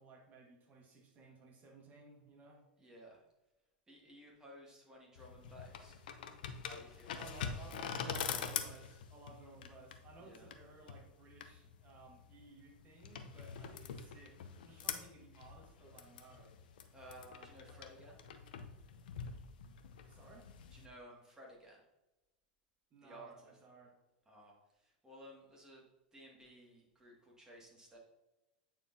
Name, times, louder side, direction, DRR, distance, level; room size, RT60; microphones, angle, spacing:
voice 1, 0.0-2.6 7.1-16.5 17.0-17.8 20.1-20.5 22.9-23.9, right 3 dB, 35° right, 1 dB, 1.7 m, -57 dB
voice 2, 2.8-3.2 3.9-6.0 6.6-7.9 10.2-10.5 16.9-18.2 20.7-21.8 23.0-23.5 24.3-25.8 26.1-28.0, equal, 15° right, -3 dB, 2.1 m, -56 dB
sound 1, 5.2-20.9, left 7 dB, 70° left, 0.6 m, -45 dB
8.8 x 4.5 x 2.8 m, 1.0 s
hypercardioid pair, 95°, 5 cm